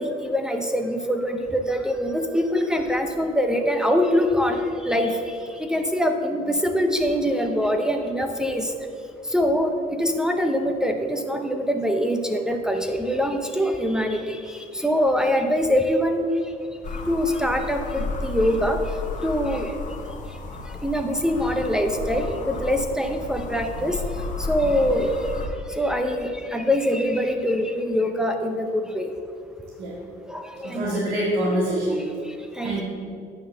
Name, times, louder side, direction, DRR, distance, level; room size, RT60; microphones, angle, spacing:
voice 1, 0.0-8.7 9.3-16.3 17.1-18.8 19.2-19.7 20.8-24.0 24.4-25.3 25.7-29.1 30.3-31.0 32.2-32.8, equal, 5° right, 4 dB, 0.6 m, -24 dB
sound 1, 16.8-25.5, left 3 dB, 50° left, 1.1 m, -33 dB
voice 2, 30.6-32.1 32.6-32.8, right 1 dB, 85° right, -6 dB, 1.9 m, -25 dB
9.4 x 4.0 x 6.7 m, 2.5 s
cardioid pair, 110°, 17 cm